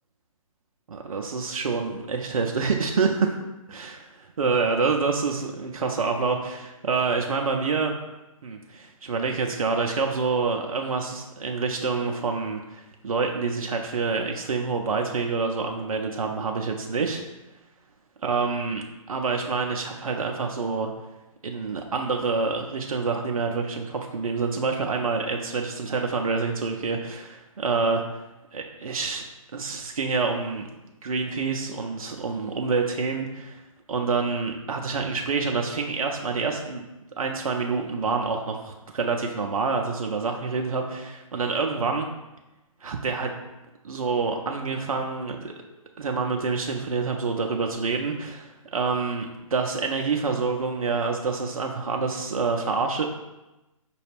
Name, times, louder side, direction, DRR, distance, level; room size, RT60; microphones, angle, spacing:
voice 1, 0.9-3.3 3.7-4.0 4.4-7.9 8.4-17.2 18.2-20.9 21.4-28.0 28.5-29.3 29.5-30.6 31.0-33.6 33.9-36.9 37.2-42.1 42.8-43.3 43.8-45.5 46.0-53.1, right 4 dB, 75° right, 3 dB, 0.5 m, -27 dB
5.1 x 2.3 x 3.3 m, 1.0 s
figure-of-eight pair, 140°, 18 cm